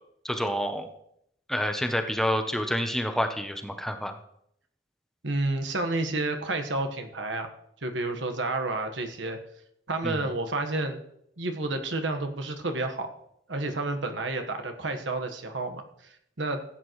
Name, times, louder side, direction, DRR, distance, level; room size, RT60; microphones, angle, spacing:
voice 1, 0.2-0.9 1.5-4.1 10.0-10.2, equal, ahead, 6 dB, 0.8 m, -28 dB
voice 2, 5.2-7.5 7.8-9.4 9.9-11.0 11.4-13.1 13.5-16.6, right 2 dB, 90° right, 6 dB, 1.4 m, -30 dB
15.5 x 9.1 x 3.2 m, 0.72 s
head